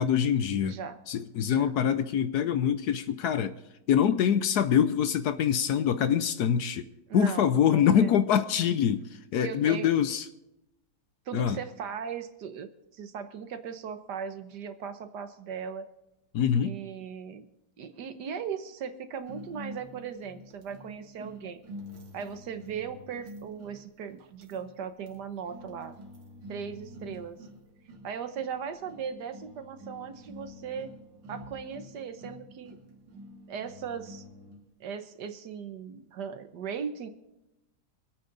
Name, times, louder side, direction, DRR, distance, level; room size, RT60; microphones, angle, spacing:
voice 1, 0.0-0.8 1.1-3.6 3.9-6.9 7.1-9.0 9.3-10.2 11.3-11.6 16.3-16.7, left 8 dB, 70° left, 12 dB, 1.1 m, -24 dB
voice 2, 0.6-1.0 1.4-1.7 7.1-8.2 9.4-9.9 11.3-15.9 16.6-17.5 17.8-21.6 22.1-26.0 26.5-27.4 28.0-30.9 31.3-32.8 33.5-34.3 34.8-37.1, right 7 dB, 65° right, 10 dB, 1.6 m, -38 dB
sound 1, 19.2-34.7, equal, 85° right, 2.4 m, -47 dB
25.0 x 8.8 x 4.0 m, 0.93 s
omnidirectional pair, 2.0 m